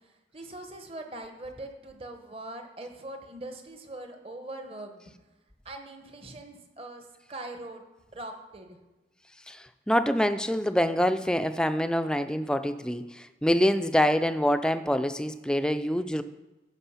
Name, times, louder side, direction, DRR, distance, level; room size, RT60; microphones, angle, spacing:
voice 1, 0.0-5.0 5.6-7.8 8.1-8.8, right 2 dB, 35° right, 4 dB, 1.1 m, -42 dB
voice 2, 9.5-16.2, equal, 5° left, 10 dB, 0.4 m, -26 dB
14.5 x 5.3 x 5.7 m, 1.1 s
head